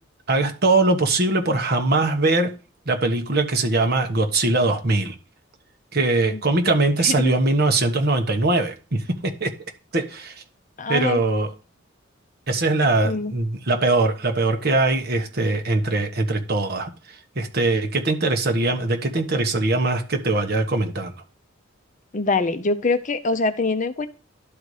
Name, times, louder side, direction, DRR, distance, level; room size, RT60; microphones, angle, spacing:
voice 1, 0.3-2.5 2.9-5.1 5.9-9.5 9.9-10.3 10.9-11.5 12.5-16.9 17.3-21.1, right 2 dB, 50° right, 1.2 m, -21 dB
voice 2, 10.8-11.2 13.0-13.3 22.1-24.1, left 3 dB, 40° left, 0.6 m, -24 dB
11.5 x 4.1 x 4.8 m
head